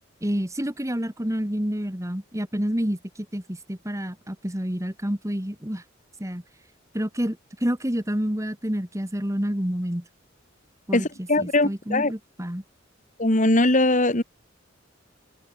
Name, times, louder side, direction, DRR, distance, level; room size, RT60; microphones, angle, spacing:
voice 1, 0.2-3.0 3.3-5.8 6.2-6.4 6.9-10.0 10.9-12.6, equal, 15° right, 2.3 m, -28 dB
voice 2, 10.9-12.1 13.2-14.2, left 2 dB, 40° left, 2.8 m, -21 dB
open air
head